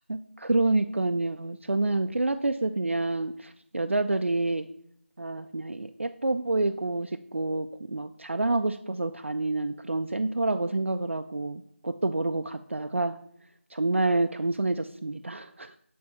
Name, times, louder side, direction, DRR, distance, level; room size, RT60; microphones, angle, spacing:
voice 1, 0.1-4.7 5.2-13.2 13.7-15.7, right 2 dB, 65° right, 7 dB, 0.4 m, -28 dB
8.5 x 3.6 x 4.3 m, 0.72 s
figure-of-eight pair, 180°, 7 cm